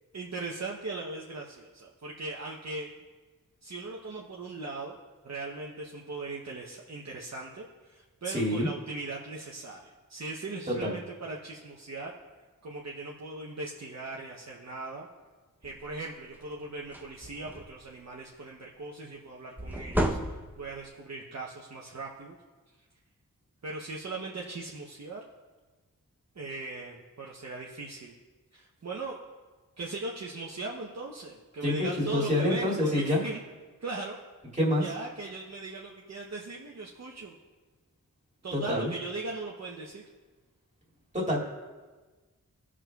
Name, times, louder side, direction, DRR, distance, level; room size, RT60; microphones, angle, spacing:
voice 1, 0.1-3.0 3.6-5.0 5.2-12.1 12.6-15.1 15.6-22.4 23.6-25.2 26.3-28.1 28.5-29.2 29.8-33.4 33.8-34.2 34.8-37.4 38.4-40.0, right 2 dB, 55° right, -2 dB, 0.8 m, -39 dB
voice 2, 8.3-8.7 10.7-10.9 31.6-33.2 34.5-34.9 38.5-38.9 41.1-41.4, left 1 dB, 20° right, -4 dB, 2.2 m, -27 dB
sound 1, 15.6-15.9 16.4-16.5 16.8-17.9 19.6-20.8, equal, 5° right, 0.7 m, -32 dB
18.0 x 6.1 x 2.3 m, 1.3 s
wide cardioid pair, 75°, 33 cm